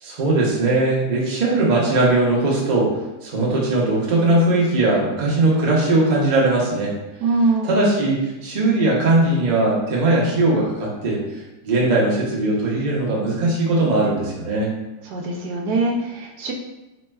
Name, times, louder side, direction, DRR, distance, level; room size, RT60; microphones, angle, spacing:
voice 1, 0.0-2.9 3.2-6.9 7.7-11.2 11.6-14.7, right 2 dB, 55° right, -4 dB, 0.4 m, -19 dB
voice 2, 7.2-7.9 15.0-16.5, right 2 dB, 75° right, 1 dB, 1.0 m, -22 dB
4.2 x 3.3 x 2.2 m, 1.0 s
omnidirectional pair, 2.0 m